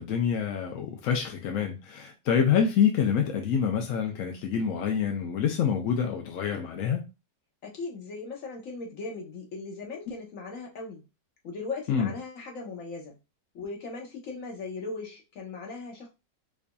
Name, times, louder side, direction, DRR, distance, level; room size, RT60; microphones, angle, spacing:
voice 1, 0.0-7.0 11.9-12.1, left 7 dB, 70° left, 0.8 m, -26 dB
voice 2, 7.6-11.0 11.4-13.2 13.5-16.1, left 3 dB, 50° left, 1.2 m, -38 dB
4.9 x 2.6 x 2.3 m
omnidirectional pair, 1.9 m